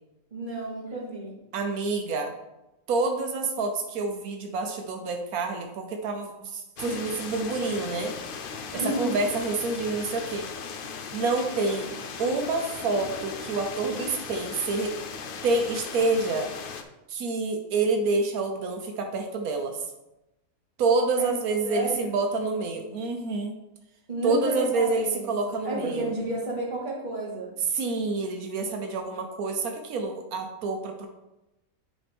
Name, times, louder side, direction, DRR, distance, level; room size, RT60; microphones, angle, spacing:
voice 1, 0.3-1.4 8.7-9.2 21.2-21.3 21.6-22.1 24.1-27.5, right 1 dB, 35° right, -4 dB, 1.8 m, -31 dB
voice 2, 1.5-2.3 2.9-8.1 8.7-10.5 11.1-11.9 12.2-15.0 15.4-16.5 17.1-19.9 20.8-23.5 24.2-26.1 27.6-31.1, right 3 dB, 90° right, 4 dB, 1.3 m, -27 dB
sound 1, 6.8-16.8, left 5 dB, 60° left, 0.6 m, -38 dB
9.8 x 4.3 x 3.4 m, 0.95 s
omnidirectional pair, 1.5 m